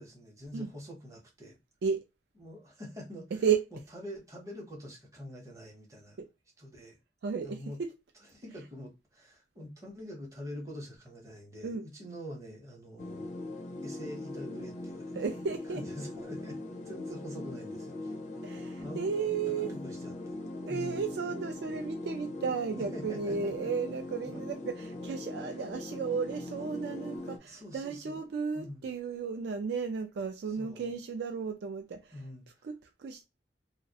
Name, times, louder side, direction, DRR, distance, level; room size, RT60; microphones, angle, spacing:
voice 1, 0.0-1.6 2.4-3.4 3.9-6.2 6.6-7.0 7.4-7.8 8.3-13.3 13.8-15.1 15.7-16.6 16.9-18.5 18.8-19.1 19.5-20.4 20.7-21.2 22.9-23.5 24.3-24.4 27.4-28.2 28.5-28.9 30.5-30.9 32.1-32.7, equal, 15° right, 0.7 m, -45 dB
voice 2, 3.3-3.9 6.2-6.3 7.2-7.9 8.5-8.6 11.6-11.9 15.1-15.9 18.4-19.7 20.7-32.3 32.6-33.2, right 6 dB, 65° right, 0.3 m, -34 dB
sound 1, 13.0-27.4, left 2 dB, 40° left, 0.4 m, -41 dB
2.3 x 2.0 x 2.7 m
head